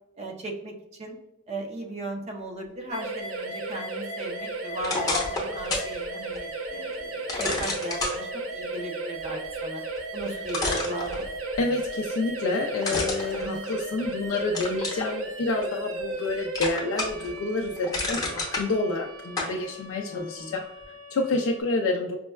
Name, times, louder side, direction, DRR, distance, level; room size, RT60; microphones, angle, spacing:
voice 1, 0.2-1.2 1.5-9.8 10.1-11.2 13.3-13.6 20.1-20.5, right 2 dB, 30° right, 2 dB, 0.4 m, -37 dB
sound 1, 2.9-21.6, right 2 dB, 85° right, 0.6 m, -35 dB
sound 2, 4.8-5.9 6.3-6.4 7.3-8.2 10.0-10.1 10.5-11.6 12.8-14.1 14.5-15.1 15.6-16.3 16.5-17.3 17.6-18.6 19.4-19.5, left 2 dB, 20° left, 0.7 m, -29 dB
voice 2, 11.5-22.2, left 2 dB, 70° left, 2 dB, 0.3 m, -29 dB
5.1 x 2.1 x 2.2 m, 0.91 s
head